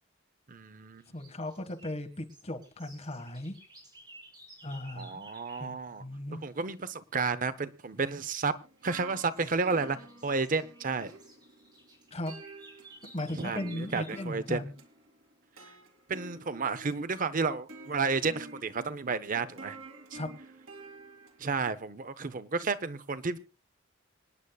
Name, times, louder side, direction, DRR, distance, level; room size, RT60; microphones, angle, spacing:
voice 1, 0.5-1.0 5.0-6.0 6.3-8.5 8.8-10.0 10.2-11.1 13.4-13.6 13.9-14.6 16.1-19.8 21.4-23.4, right 4 dB, 40° right, 0.7 m, -31 dB
sound 1, 1.0-5.7 7.9-8.3 8.8-14.3, right 1 dB, 20° right, 5.1 m, -55 dB
voice 2, 1.1-3.6 4.6-5.3 5.6-6.4 12.1-12.3 13.1-14.7 20.1-20.3, left 1 dB, 30° left, 1.6 m, -37 dB
sound 2, 8.6-21.8, right 2 dB, 90° right, 2.6 m, -50 dB
26.0 x 9.9 x 2.3 m
head